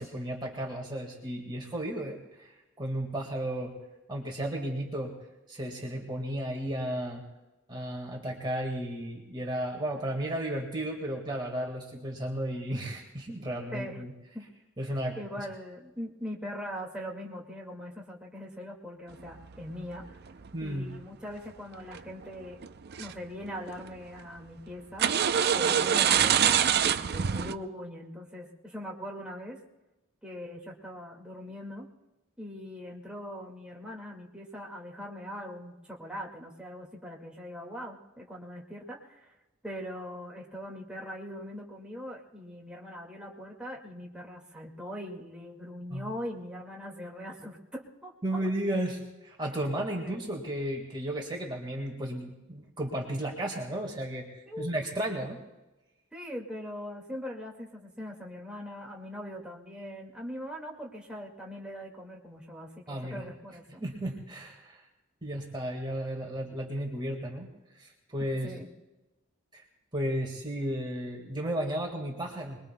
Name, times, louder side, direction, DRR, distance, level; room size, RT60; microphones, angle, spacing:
voice 1, 0.0-3.8 4.1-5.2 5.5-7.2 7.7-14.1 14.8-15.2 20.5-20.9 45.9-46.1 48.2-55.4 62.9-63.2 63.8-64.8 65.2-67.5 67.8-68.5 69.5-69.6 69.9-72.6, right 1 dB, 20° right, 0 dB, 1.7 m, -34 dB
voice 2, 15.2-20.2 20.6-22.6 23.0-25.1 25.5-29.6 30.2-31.9 32.4-39.3 39.6-48.1 50.0-50.2 54.5-54.7 56.1-63.8 68.4-68.7, equal, 5° right, -2 dB, 2.0 m, -41 dB
sound 1, 19.2-20.7 21.9-22.2 22.6-23.1 23.4-24.0 25.0-27.5, right 8 dB, 55° right, 0.5 m, -25 dB
25.5 x 21.0 x 2.2 m, 1.0 s
head